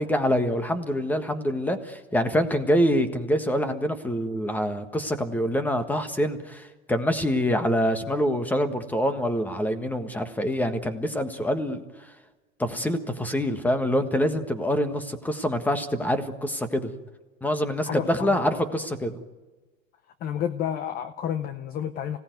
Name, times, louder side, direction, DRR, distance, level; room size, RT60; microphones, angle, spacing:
voice 1, 0.0-12.1 12.6-16.9 17.4-19.1, equal, 5° left, 1.5 m, -25 dB
voice 2, 17.8-18.6 20.2-22.2, left 9 dB, 20° left, 0.7 m, -30 dB
25.5 x 17.5 x 9.3 m
hypercardioid pair, 140°, 41 cm